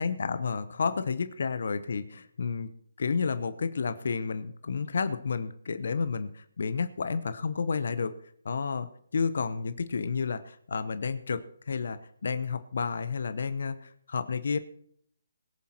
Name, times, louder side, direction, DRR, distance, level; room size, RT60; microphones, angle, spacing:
voice 1, 0.0-2.7 3.0-8.1 8.4-14.6, left 5 dB, 65° left, 12 dB, 0.9 m, -31 dB
21.5 x 7.6 x 4.3 m, 0.66 s
hypercardioid pair, 155°, 0 cm